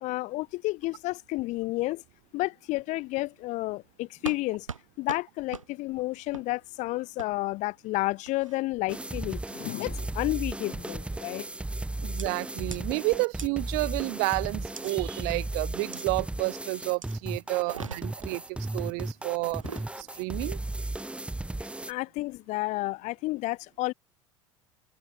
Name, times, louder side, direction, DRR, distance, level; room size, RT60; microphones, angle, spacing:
voice 1, 0.0-2.0 2.3-4.7 5.0-11.5 21.9-23.9, left 20 dB, 50° left, 0.8 m, -31 dB
sound 1, 4.3-4.4 4.7-4.8 5.1-5.2 5.5-5.7 6.3-6.5 7.2-7.3 8.3-8.6 9.2-9.5 10.0-10.3 11.1-11.4 12.2-12.3 12.7-12.8 13.4-13.5 14.8-14.9 15.9-16.1 17.0-17.2 17.6-18.3 19.5-19.9, right 6 dB, 85° right, 1.9 m, -41 dB
sound 2, 8.9-21.9, right 2 dB, 5° right, 1.5 m, -35 dB
voice 2, 12.0-19.6 20.0-20.6, right 35 dB, 55° right, 0.7 m, -30 dB
open air
figure-of-eight pair, 75°, 16 cm